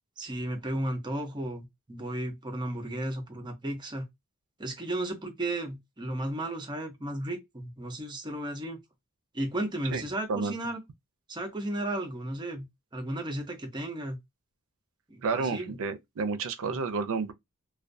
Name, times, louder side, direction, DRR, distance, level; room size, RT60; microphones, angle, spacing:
voice 1, 0.2-4.1 4.6-8.8 9.3-10.8 11.3-12.6 12.9-14.2 15.1-15.8 16.6-16.8, right 1 dB, 20° right, 0.6 m, -34 dB
voice 2, 15.2-17.3, right 4 dB, 65° right, 0.5 m, -30 dB
2.2 x 2.2 x 2.5 m
head